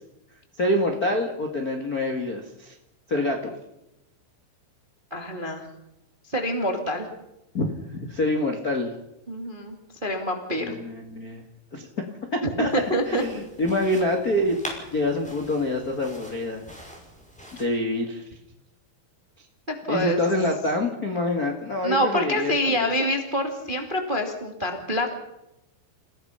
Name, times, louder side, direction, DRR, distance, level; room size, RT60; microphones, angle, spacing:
voice 1, 0.6-2.7 3.1-3.5 7.5-8.9 10.6-11.4 11.7-11.9 12.3-12.7 13.1-14.6 14.9-16.6 17.6-18.3 19.9-22.9, left 1 dB, 70° left, 1 dB, 0.8 m, -26 dB
voice 2, 5.1-5.7 6.3-7.1 9.3-10.7 12.4-13.2 19.7-20.2 21.8-25.1, equal, 30° right, 3 dB, 0.9 m, -26 dB
sound 1, 12.7-17.6, right 1 dB, ahead, 5.0 m, -43 dB
29.0 x 17.0 x 5.7 m, 0.90 s
omnidirectional pair, 5.4 m